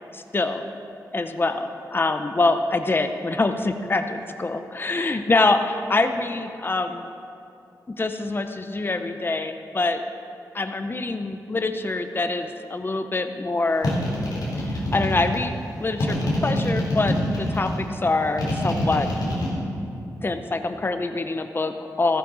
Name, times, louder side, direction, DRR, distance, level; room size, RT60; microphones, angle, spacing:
voice 1, 0.1-0.6 1.1-7.1 8.0-10.0 10.5-13.9 14.6-15.5 15.8-19.1 20.2-22.2, left 3 dB, 30° left, 7 dB, 0.7 m, -25 dB
sound 1, 13.8-15.4 16.0-17.7 18.4-19.5, left 1 dB, 85° left, 3.4 m, -25 dB
14.0 x 13.5 x 4.0 m, 2.7 s
cardioid pair, 70°, 7 cm